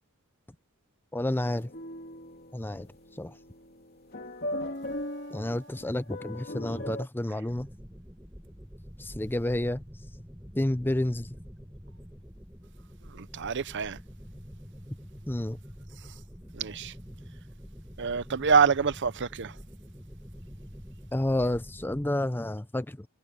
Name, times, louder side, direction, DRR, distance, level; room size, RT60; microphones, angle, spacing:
voice 1, 1.1-1.7 2.5-2.9 3.2-3.3 5.3-7.7 9.0-9.8 10.6-11.3 15.3-15.6 21.1-23.1, left 1 dB, 10° left, 0.5 m, -30 dB
sound 1, 1.4-7.1, left 1 dB, 45° left, 3.1 m, -39 dB
sound 2, 7.5-22.1, equal, 10° right, 6.8 m, -46 dB
voice 2, 13.1-14.0 16.5-16.9 18.0-19.6, right 6 dB, 55° right, 0.7 m, -26 dB
open air
head